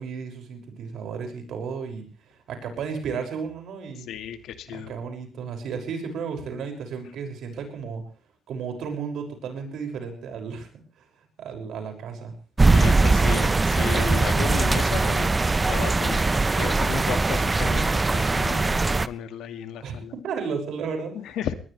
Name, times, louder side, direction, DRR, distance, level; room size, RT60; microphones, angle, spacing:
voice 1, 0.0-4.1 4.7-8.0 8.5-11.1 11.4-12.3 19.8-20.0 20.2-21.4, right 5 dB, 75° right, 4 dB, 6.2 m, -33 dB
voice 2, 4.1-4.9 12.7-15.3 15.6-16.3 16.5-20.1 21.2-21.5, left 10 dB, 80° left, 10 dB, 1.9 m, -34 dB
sound 1, 12.6-19.1, right 3 dB, 20° right, 0.7 m, -21 dB
21.0 x 19.5 x 3.3 m, 0.39 s
cardioid pair, 90°, 0 cm